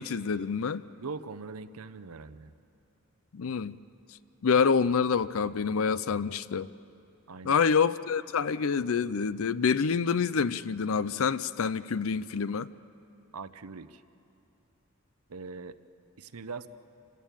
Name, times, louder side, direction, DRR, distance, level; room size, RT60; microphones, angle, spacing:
voice 1, 0.0-0.8 3.3-3.8 4.4-6.7 7.4-12.7, left 6 dB, 65° left, 17 dB, 0.5 m, -27 dB
voice 2, 1.0-2.5 7.3-7.6 13.3-14.0 15.3-15.8 16.2-16.7, right 4 dB, 85° right, 12 dB, 0.7 m, -41 dB
27.0 x 16.0 x 9.0 m, 2.7 s
head